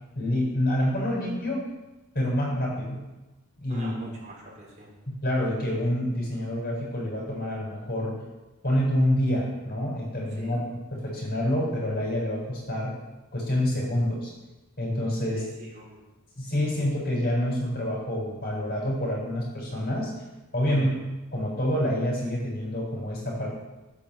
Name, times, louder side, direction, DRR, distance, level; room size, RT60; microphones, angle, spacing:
voice 1, 0.1-1.6 2.1-3.0 3.6-3.9 5.1-8.2 8.6-10.6 10.9-12.9 13.3-14.3 14.8-15.5 16.4-20.1 20.5-20.9 21.3-23.5, left 1 dB, 45° left, -3 dB, 7.2 m, -27 dB
voice 2, 3.7-4.9 10.4-10.6 15.3-16.0 20.7-20.9, equal, 35° right, -4 dB, 5.3 m, -42 dB
16.0 x 9.6 x 8.1 m, 1.1 s
head